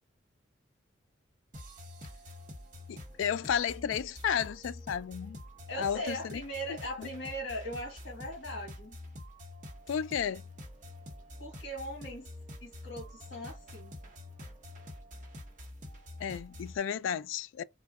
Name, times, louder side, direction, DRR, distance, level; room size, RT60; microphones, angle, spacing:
sound 1, 1.5-16.8, left 1 dB, 40° right, 0.9 m, -47 dB
voice 1, 2.9-5.4 5.7-6.4 6.7-7.1 9.9-10.4 16.2-17.6, left 8 dB, 80° left, 0.3 m, -33 dB
voice 2, 5.7-8.9 11.4-12.3 12.6-14.0, equal, 55° left, 1.5 m, -39 dB
3.7 x 2.1 x 2.3 m
head